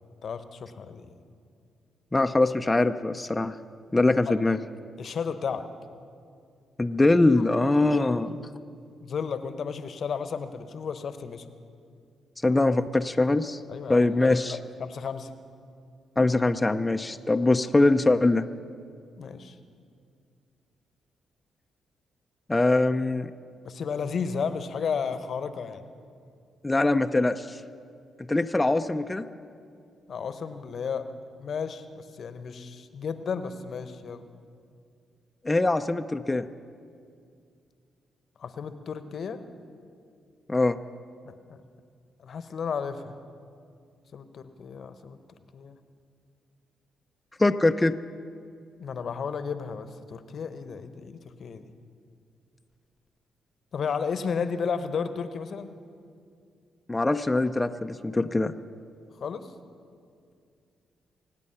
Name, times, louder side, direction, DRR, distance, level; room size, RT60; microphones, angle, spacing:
voice 1, 0.2-1.2 4.3-4.4 5.0-5.6 7.9-8.2 9.0-11.4 13.7-15.3 19.2-19.6 23.6-25.8 30.1-31.1 31.4-34.2 38.4-39.4 41.2-41.6 42.2-43.2 44.1-45.2 45.5-45.8 48.8-51.7 53.7-55.7 59.2-59.5, left 6 dB, 60° left, 11 dB, 0.9 m, -33 dB
voice 2, 2.1-3.5 3.9-4.6 6.8-8.3 12.4-13.6 13.9-14.6 16.2-18.4 22.5-23.3 26.6-27.6 28.2-29.2 35.4-36.5 40.5-40.8 47.4-48.0 56.9-58.5, left 2 dB, 20° left, 7 dB, 0.6 m, -23 dB
25.5 x 9.0 x 5.7 m, 2.3 s
hypercardioid pair, 45°, 0 cm